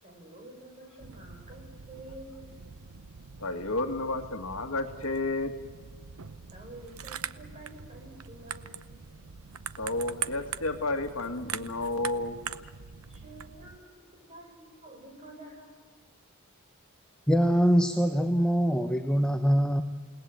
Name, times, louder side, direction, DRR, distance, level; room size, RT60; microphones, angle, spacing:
voice 1, 0.0-2.5 6.5-8.8 13.1-16.0, right 1 dB, 35° right, 2 dB, 6.9 m, -49 dB
sound 1, 1.0-13.8, right 8 dB, 75° right, 0.8 m, -42 dB
voice 2, 3.4-5.6 9.8-12.4, left 2 dB, 70° left, 6 dB, 2.2 m, -31 dB
voice 3, 17.3-19.8, equal, 5° left, 5 dB, 0.9 m, -23 dB
29.0 x 19.0 x 7.8 m, 1.5 s
head